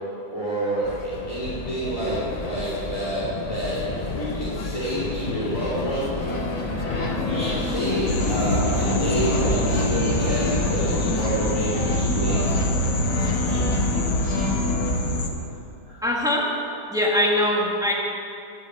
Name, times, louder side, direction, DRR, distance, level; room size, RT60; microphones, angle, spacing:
voice 1, 0.3-3.8 4.1-6.1 7.0-12.4 13.1-13.2 15.8-16.0, right 1 dB, 20° left, -9 dB, 2.5 m, -28 dB
sound 1, 0.8-14.8, left 3 dB, 35° left, 0.6 m, -31 dB
sound 2, 6.2-14.9, left 1 dB, 85° left, 2.3 m, -29 dB
sound 3, 8.1-15.3, left 1 dB, 65° left, 1.5 m, -25 dB
voice 2, 16.0-16.5 16.9-17.9, left 1 dB, ahead, -2 dB, 1.6 m, -21 dB
12.5 x 7.6 x 8.6 m, 2.7 s
omnidirectional pair, 1.6 m